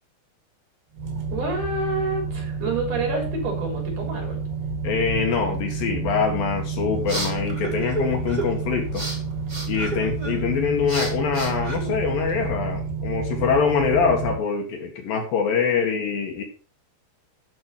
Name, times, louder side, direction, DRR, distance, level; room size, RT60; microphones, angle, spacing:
sound 1, 0.9-14.4, right 4 dB, 70° right, 4.0 m, -30 dB
voice 1, 1.3-4.4, right 2 dB, 50° right, 0 dB, 4.7 m, -28 dB
voice 2, 4.8-9.0 9.7-16.4, left 6 dB, 65° left, 2 dB, 3.4 m, -24 dB
sound 2, 6.6-12.5, right 2 dB, 20° right, 1.4 m, -33 dB
9.7 x 6.8 x 5.6 m, 0.39 s
omnidirectional pair, 4.8 m